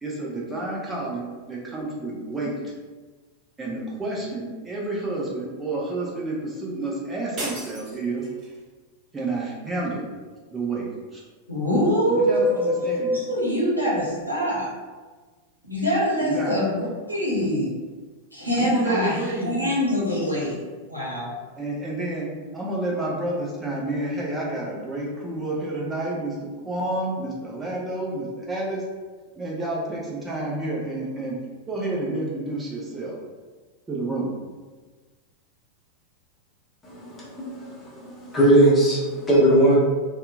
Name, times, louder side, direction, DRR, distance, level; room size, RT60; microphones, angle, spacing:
voice 1, 0.0-2.7 3.6-8.2 9.1-10.1 10.5-10.9 11.1-11.2 12.1-13.2 16.2-16.6 18.5-19.7 21.6-22.3 22.5-28.8 29.4-31.4 31.7-33.2 33.9-34.3, right 2 dB, 15° right, -4 dB, 0.7 m, -29 dB
sound 1, 7.4-8.6, right 1 dB, 30° right, 1.2 m, -35 dB
voice 2, 11.5-14.7 15.6-17.7 18.3-20.6 20.9-21.3, equal, 85° right, -7 dB, 0.8 m, -24 dB
voice 3, 36.8-39.7, right 1 dB, 15° left, -7 dB, 0.9 m, -19 dB
2.8 x 2.3 x 2.3 m, 1.3 s
figure-of-eight pair, 90°, 0 cm